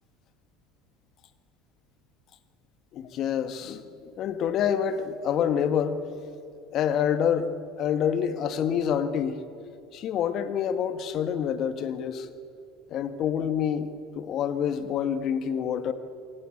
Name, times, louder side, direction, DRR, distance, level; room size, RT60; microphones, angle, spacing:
voice 1, 2.9-6.0 6.7-9.4 9.9-12.3 12.9-13.9 14.2-15.9, left 8 dB, 50° left, 10 dB, 1.8 m, -27 dB
27.5 x 22.0 x 8.7 m, 2.6 s
hypercardioid pair, 90°, 0 cm